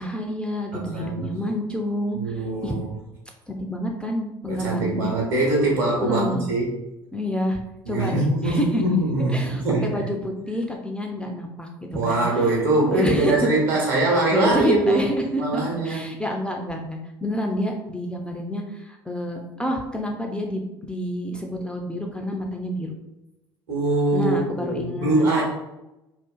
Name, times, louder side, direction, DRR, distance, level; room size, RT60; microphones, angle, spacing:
voice 1, 0.0-2.7 3.5-5.1 6.0-6.5 7.1-7.6 7.9-8.8 9.3-12.4 12.9-13.5 14.1-22.9 24.1-25.4, equal, 10° left, 1 dB, 0.3 m, -28 dB
voice 2, 0.7-1.3 2.1-2.9 4.5-6.7 7.8-10.1 11.9-15.1 15.4-16.0 23.7-25.4, right 2 dB, 65° right, -4 dB, 1.0 m, -23 dB
2.4 x 2.4 x 2.2 m, 0.95 s
figure-of-eight pair, 60°, 13 cm